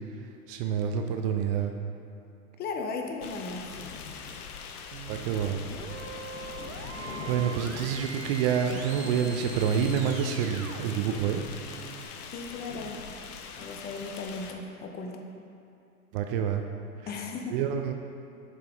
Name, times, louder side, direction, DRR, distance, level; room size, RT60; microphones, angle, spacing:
voice 1, 0.5-1.7 5.1-5.6 7.3-11.4 16.1-16.6 17.0-17.1 17.5-17.9, right 8 dB, 40° right, 5 dB, 0.5 m, -28 dB
voice 2, 2.6-3.7 12.3-13.0 13.6-15.3 17.1-17.5, left 4 dB, 20° left, 3 dB, 0.6 m, -36 dB
sound 1, 3.2-14.5, left 6 dB, 80° left, 0.7 m, -41 dB
sound 2, 4.9-12.0, right 7 dB, 65° right, 0.8 m, -43 dB
6.9 x 5.0 x 3.5 m, 2.7 s
hypercardioid pair, 110°, 45 cm